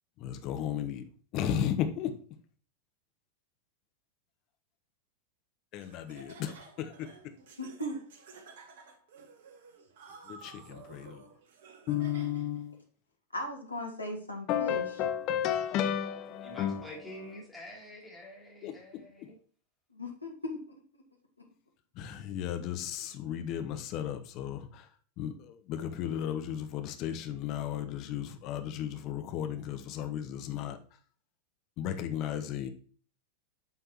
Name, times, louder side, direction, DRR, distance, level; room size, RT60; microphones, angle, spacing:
voice 1, 0.2-1.0 1.3-2.1 5.7-7.1 10.3-11.2 11.9-12.8 14.5-17.2 18.6-18.7 21.9-24.9 25.2-30.8 31.8-32.7, left 10 dB, 40° left, 1.0 m, -34 dB
Laughter, 5.8-12.6, right 4 dB, 55° right, 1.2 m, -53 dB
voice 2, 7.6-8.0 13.3-14.8 19.9-20.8, left 1 dB, 85° left, 1.5 m, -37 dB
voice 3, 16.4-19.4, equal, ahead, 3.1 m, -47 dB
9.5 x 5.8 x 3.0 m
figure-of-eight pair, 90°, 0 cm